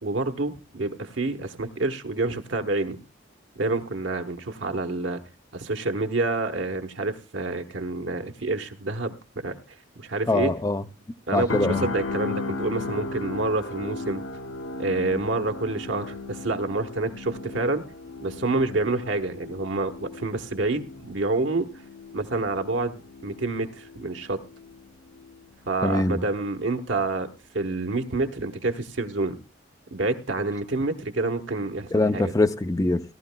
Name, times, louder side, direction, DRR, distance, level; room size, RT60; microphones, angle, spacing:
voice 1, 0.0-3.0 3.5-5.2 5.5-9.6 10.0-10.5 11.3-14.2 14.8-17.8 18.2-21.7 22.1-24.4 25.7-27.3 27.5-29.4 29.9-31.9 32.1-32.3, right 2 dB, 70° right, 1.1 m, -28 dB
voice 2, 10.3-10.8 11.3-11.9 25.8-26.2 31.9-33.0, left 2 dB, 15° left, 0.5 m, -23 dB
sound 1, 11.5-25.5 25.8-26.1, left 3 dB, 85° left, 0.8 m, -36 dB
18.5 x 12.5 x 2.2 m
head